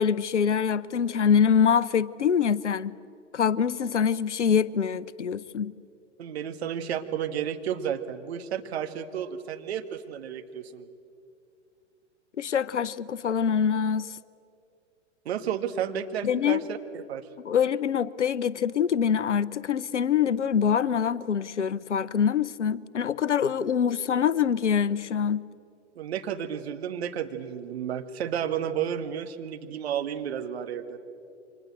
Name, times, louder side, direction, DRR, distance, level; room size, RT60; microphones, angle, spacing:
voice 1, 0.0-2.9 3.3-5.7 12.4-14.1 16.2-16.6 17.4-25.4, left 7 dB, 75° left, 0.9 m, -24 dB
voice 2, 6.2-10.9 15.3-17.3 26.0-31.0, right 9 dB, 60° right, 2.0 m, -32 dB
29.5 x 25.0 x 7.8 m
figure-of-eight pair, 100°, 36 cm